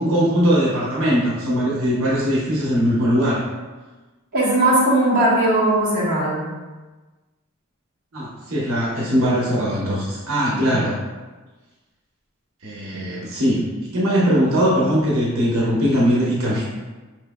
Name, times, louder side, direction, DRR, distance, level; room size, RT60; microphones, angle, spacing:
voice 1, 0.0-3.4 8.1-11.0 12.6-16.6, equal, 70° right, -6 dB, 1.0 m, -20 dB
voice 2, 4.3-6.5 10.6-10.9, right 1 dB, 40° right, -8 dB, 1.1 m, -18 dB
4.5 x 3.3 x 2.2 m, 1.2 s
head